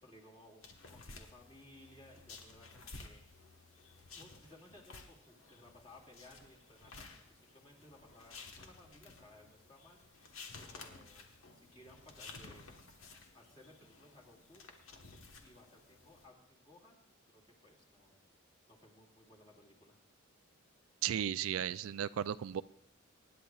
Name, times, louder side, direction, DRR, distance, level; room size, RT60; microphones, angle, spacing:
voice 1, 0.0-0.6 0.9-3.2 4.1-10.0 10.6-11.3 11.5-12.8 13.3-14.7 15.4-18.2 18.6-20.0, left 1 dB, 25° left, -1 dB, 2.2 m, -60 dB
sound 1, 0.6-16.2, left 3 dB, 75° left, 1.3 m, -54 dB
voice 2, 21.0-22.6, right 10 dB, 85° right, 15 dB, 0.3 m, -35 dB
24.5 x 10.5 x 2.4 m, 0.72 s
head